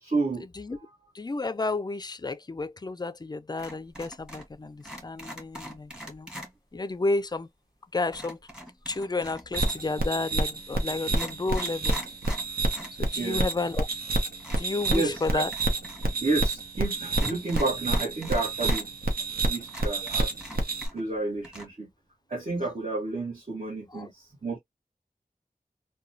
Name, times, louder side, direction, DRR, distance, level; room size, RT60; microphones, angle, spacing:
voice 1, 0.0-0.5 13.1-13.5 14.9-15.4 16.0-18.9 19.4-20.3 20.9-21.9 22.3-24.6, right 3 dB, 55° right, 1.2 m, -30 dB
voice 2, 1.1-6.3 6.7-7.5 7.9-8.4 8.9-12.0 13.0-13.9 14.6-15.5 23.9-24.1, left 3 dB, 30° left, 0.3 m, -31 dB
sound 1, 3.6-4.5 4.8-6.5 8.1-9.9 10.6-10.7 11.0-13.0 13.3-13.4 14.4-16.1 16.3-16.4 17.1-18.8 19.3-19.4 19.7-21.2 21.4-21.6, equal, 5° right, 1.2 m, -42 dB
sound 2, 9.5-20.9, right 2 dB, 85° right, 0.8 m, -28 dB
2.9 x 2.2 x 2.6 m
wide cardioid pair, 60°, 15 cm